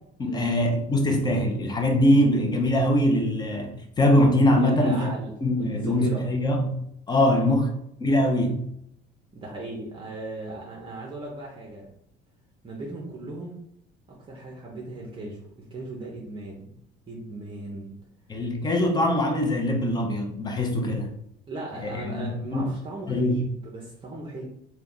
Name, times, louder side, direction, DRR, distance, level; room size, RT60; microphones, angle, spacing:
voice 1, 0.2-5.1 5.4-6.8 7.1-7.7 8.0-8.7 18.3-21.1 21.8-22.7 23.1-23.4, left 1 dB, 20° left, 3 dB, 0.6 m, -22 dB
voice 2, 4.5-6.3 7.2-7.5 9.3-11.9 12.6-13.6 14.1-16.7 17.1-18.0 21.5-24.5, right 2 dB, 25° right, -2 dB, 0.7 m, -37 dB
3.3 x 2.2 x 3.8 m, 0.75 s
cardioid pair, 145°, 20 cm